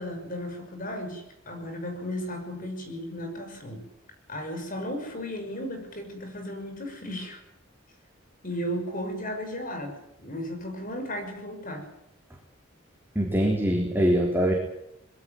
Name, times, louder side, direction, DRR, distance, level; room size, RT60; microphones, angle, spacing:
voice 1, 0.0-3.8 4.3-7.4 8.4-11.9, equal, 40° left, 5 dB, 6.1 m, -35 dB
voice 2, 13.2-14.5, equal, 10° right, 0 dB, 3.7 m, -23 dB
22.0 x 16.5 x 9.4 m, 0.81 s
head